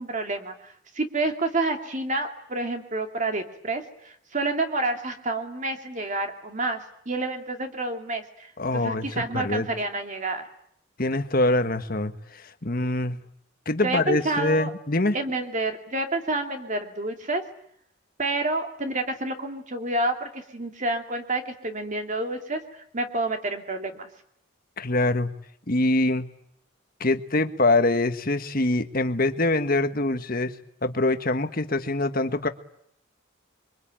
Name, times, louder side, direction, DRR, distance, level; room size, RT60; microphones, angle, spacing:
voice 1, 0.0-10.4 13.8-14.7 15.1-17.4 18.2-22.6 22.9-24.1, right 2 dB, 40° right, 5 dB, 2.5 m, -29 dB
voice 2, 8.6-9.7 11.0-13.2 13.6-15.1 24.8-25.3 25.7-26.3 27.0-30.5 30.8-32.5, left 2 dB, 45° left, 9 dB, 1.6 m, -24 dB
27.5 x 24.0 x 9.0 m, 0.71 s
head